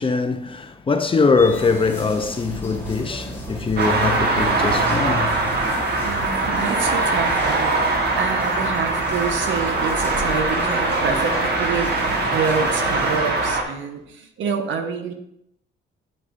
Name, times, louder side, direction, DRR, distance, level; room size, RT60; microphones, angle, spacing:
voice 1, 0.0-5.4, left 4 dB, 25° left, 0.6 m, -22 dB
sound 1, 1.4-13.2, left 1 dB, 10° left, 1.4 m, -35 dB
sound 2, 1.9-14.0, right 3 dB, 5° right, 2.3 m, -37 dB
sound 3, 3.8-13.6, right 2 dB, 55° right, 1.3 m, -22 dB
voice 2, 6.0-12.0 12.2-15.1, right 6 dB, 75° right, 1.1 m, -27 dB
9.9 x 4.7 x 2.6 m
cardioid pair, 90°, 20 cm